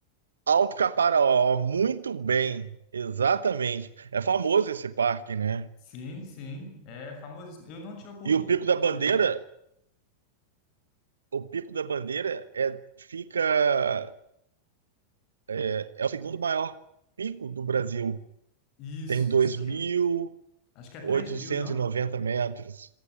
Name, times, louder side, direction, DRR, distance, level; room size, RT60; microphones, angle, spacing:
voice 1, 0.5-5.7 8.3-9.4 11.3-14.1 15.5-16.7 17.2-18.2 19.1-20.3 21.0-22.9, right 6 dB, 70° right, 1.0 m, -26 dB
voice 2, 5.8-9.2 18.8-19.8 20.7-21.9, left 2 dB, 40° left, 6.4 m, -41 dB
26.0 x 18.0 x 9.4 m
figure-of-eight pair, 90°, 0 cm